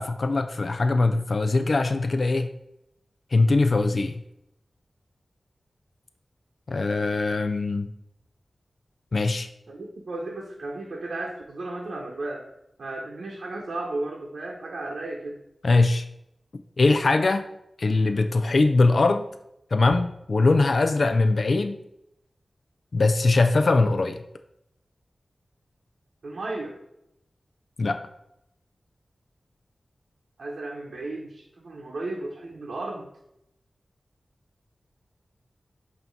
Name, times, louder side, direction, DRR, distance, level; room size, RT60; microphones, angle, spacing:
voice 1, 0.0-2.5 3.3-4.2 6.7-7.9 9.1-9.5 15.6-16.0 16.8-17.4 17.8-19.3 19.7-21.8 22.9-24.2 27.8-28.0, left 3 dB, 65° left, 8 dB, 0.4 m, -21 dB
voice 2, 9.7-12.5 12.8-15.4 26.2-26.8 30.4-33.1, right 2 dB, 80° right, -2 dB, 0.8 m, -34 dB
7.9 x 2.8 x 4.4 m, 0.82 s
wide cardioid pair, 75°, 0 cm